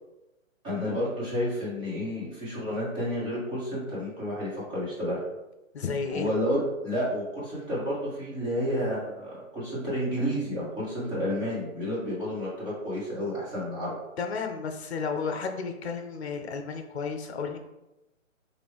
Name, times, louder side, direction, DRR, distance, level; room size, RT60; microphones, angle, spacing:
voice 1, 0.6-5.2 6.1-14.0, equal, 15° right, -8 dB, 1.4 m, -30 dB
voice 2, 5.7-6.3 14.2-17.6, left 5 dB, 55° left, 6 dB, 0.7 m, -32 dB
5.0 x 2.6 x 3.5 m, 0.98 s
hypercardioid pair, 160°, 40 cm